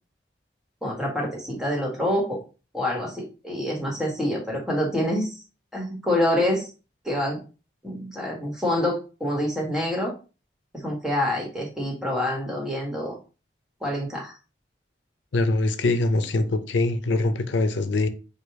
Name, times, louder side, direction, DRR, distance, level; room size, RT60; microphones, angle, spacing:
voice 1, 0.8-2.4 2.7-5.4 5.7-6.7 7.0-7.4 7.8-10.1 10.7-13.2 13.8-14.3, left 1 dB, 5° right, 1.3 m, -26 dB
voice 2, 15.3-18.1, left 2 dB, 85° left, 0.5 m, -23 dB
5.0 x 2.3 x 4.6 m
head